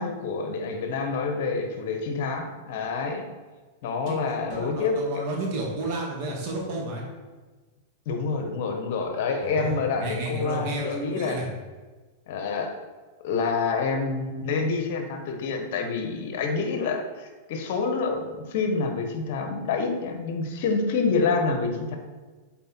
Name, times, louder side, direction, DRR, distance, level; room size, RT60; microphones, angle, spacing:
voice 1, 0.0-3.3 3.8-5.2 8.1-11.4 12.3-12.8 13.2-22.0, left 4 dB, 60° left, 5 dB, 1.1 m, -27 dB
voice 2, 4.1-7.0 9.4-11.5, right 2 dB, 50° right, -2 dB, 2.2 m, -32 dB
7.7 x 4.3 x 4.4 m, 1.3 s
hypercardioid pair, 135°, 0 cm